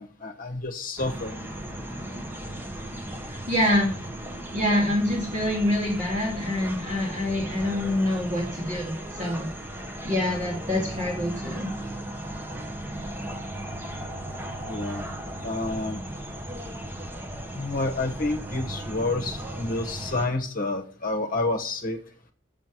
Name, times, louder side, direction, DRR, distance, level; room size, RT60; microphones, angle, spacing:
voice 1, 0.0-1.5 14.7-15.0 15.4-16.0 17.5-22.0, left 2 dB, 40° left, 4 dB, 1.2 m, -29 dB
sound 1, 1.0-20.3, right 1 dB, 10° right, 1.1 m, -36 dB
voice 2, 3.3-3.9 4.5-9.5 10.0-11.7, left 1 dB, 35° right, -2 dB, 2.3 m, -26 dB
7.2 x 7.0 x 6.0 m, 0.43 s
head